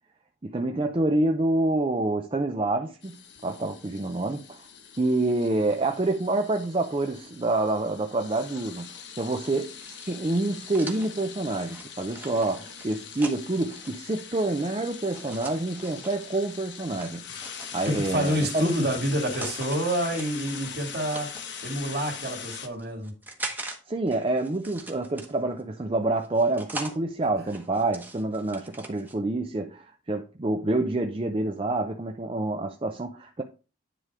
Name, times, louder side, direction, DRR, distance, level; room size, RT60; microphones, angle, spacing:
voice 1, 0.4-3.1 3.4-4.7 5.0-17.3 17.7-18.7 23.9-33.4, right 2 dB, 25° right, 0.5 m, -27 dB
sound 1, 3.0-22.7, left 7 dB, 60° left, 1.0 m, -42 dB
sound 2, 9.8-13.9 15.1-16.2 17.0-18.2 18.9-19.8 20.1-21.6 22.3-23.8 24.1-25.6 26.2-27.0 27.4-29.1, right 2 dB, 10° right, 1.0 m, -41 dB
voice 2, 17.8-21.3 21.6-23.1, equal, 50° right, 2.5 m, -28 dB
10.0 x 3.5 x 4.8 m
head